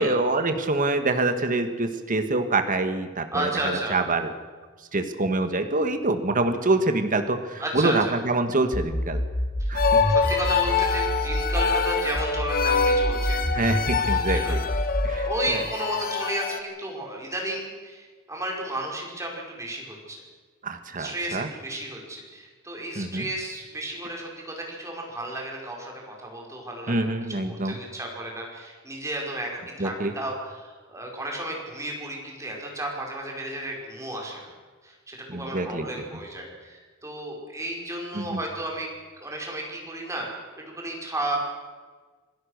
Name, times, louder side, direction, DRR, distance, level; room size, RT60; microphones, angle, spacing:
voice 1, 0.0-4.3 4.9-9.2 9.7-10.0 13.5-14.6 15.0-15.6 20.6-21.5 23.0-23.2 26.9-27.8 29.8-30.1 35.3-35.9 38.1-38.4, right 2 dB, 40° right, 8 dB, 1.5 m, -25 dB
voice 2, 3.3-4.0 7.6-8.1 9.6-14.6 15.2-20.2 21.0-34.5 34.8-38.9 39.2-40.3 40.7-41.4, right 1 dB, 15° right, -1 dB, 5.2 m, -33 dB
sound 1, 8.7-11.7 12.1-15.2, equal, 25° left, 3.2 m, -28 dB
sound 2, 9.8-16.6, left 5 dB, 45° left, 1.4 m, -25 dB
26.5 x 17.0 x 6.6 m, 1.4 s
head